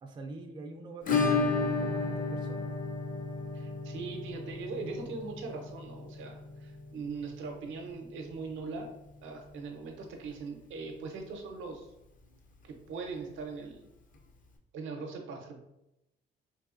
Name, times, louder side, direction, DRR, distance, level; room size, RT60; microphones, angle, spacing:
voice 1, 0.0-2.7, right 2 dB, 25° right, 2 dB, 0.4 m, -45 dB
Acoustic guitar / Strum, 1.1-9.7 9.9-10.0 10.3-10.4 10.8-10.9 12.9-13.0 14.1-14.2, left 4 dB, 45° left, 0.5 m, -34 dB
voice 2, 3.5-8.9 9.2-11.9 12.6-13.9 14.7-15.6, right 4 dB, 80° right, 3 dB, 0.6 m, -40 dB
3.3 x 2.7 x 2.5 m, 0.88 s
cardioid pair, 90°, 20 cm